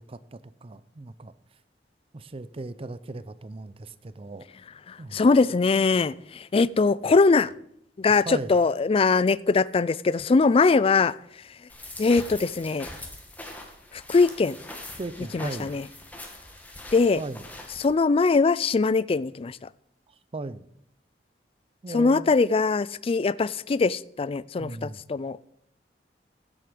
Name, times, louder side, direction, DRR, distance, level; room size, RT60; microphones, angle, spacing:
voice 1, 0.0-1.3 2.1-4.5 5.0-5.2 8.1-8.5 15.0-15.8 17.2-17.5 20.3-20.7 21.8-22.3 24.6-25.0, right 2 dB, 35° right, 16 dB, 0.5 m, -37 dB
voice 2, 4.9-7.5 8.0-11.1 12.0-12.9 13.9-14.6 15.3-15.8 16.9-17.2 17.8-19.6 21.9-25.4, left 4 dB, 35° left, 20 dB, 0.4 m, -22 dB
sound 1, 11.7-17.9, left 1 dB, 10° left, 1.7 m, -42 dB
15.0 x 7.9 x 5.1 m, 0.72 s
head